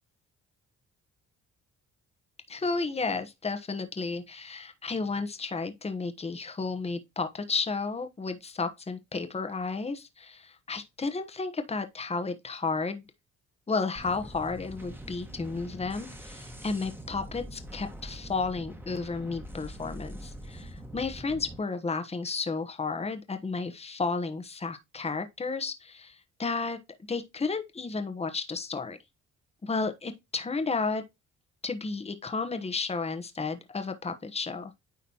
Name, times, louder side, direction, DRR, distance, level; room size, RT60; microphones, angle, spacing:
voice 1, 2.5-13.0 13.7-26.8 27.1-29.0 29.6-31.0 31.6-34.8, left 4 dB, 20° left, 1.1 m, -32 dB
sound 1, 14.0-21.6, equal, 5° right, 1.5 m, -43 dB
9.5 x 4.1 x 2.9 m
cardioid pair, 90°, 30 cm